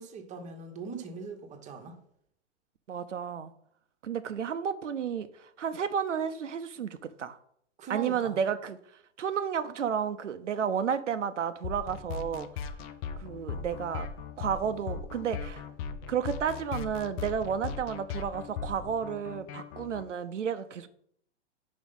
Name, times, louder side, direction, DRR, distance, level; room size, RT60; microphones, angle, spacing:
voice 1, 0.0-2.0 7.8-8.4, right 5 dB, 20° right, 1.0 m, -40 dB
voice 2, 2.9-3.5 4.0-7.4 7.9-8.8 9.2-12.5 13.2-14.1 14.4-15.6 16.1-20.9, right 7 dB, 90° right, 0.7 m, -32 dB
sound 1, 11.6-20.0, left 6 dB, 20° left, 0.3 m, -38 dB
5.2 x 4.8 x 5.4 m
hypercardioid pair, 120°, 36 cm